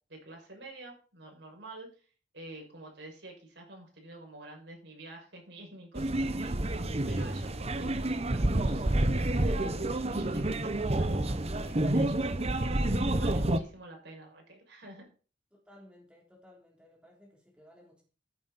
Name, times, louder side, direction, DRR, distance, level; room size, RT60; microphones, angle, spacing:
voice 1, 0.1-1.9 2.3-6.7 7.1-12.3 12.5-15.1, right 2 dB, 70° right, 0 dB, 6.3 m, -48 dB
sound 1, 5.9-13.6, right 1 dB, 35° right, 1.0 m, -29 dB
voice 2, 15.5-18.0, left 1 dB, 5° right, -1 dB, 3.5 m, -57 dB
14.5 x 9.3 x 4.3 m, 0.37 s
head